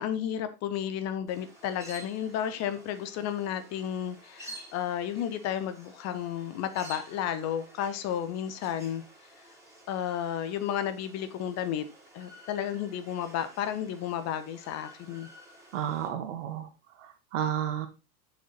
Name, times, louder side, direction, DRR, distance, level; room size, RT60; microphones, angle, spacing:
voice 1, 0.0-9.0 9.9-11.9 12.1-15.3, left 9 dB, 35° left, 11 dB, 1.0 m, -32 dB
sound 1, 1.3-16.1, right 1 dB, 5° right, 3.8 m, -51 dB
voice 2, 15.7-16.7 17.0-17.9, right 9 dB, 55° right, 7 dB, 1.8 m, -32 dB
6.8 x 6.6 x 4.0 m, 0.29 s
figure-of-eight pair, 90°, 44 cm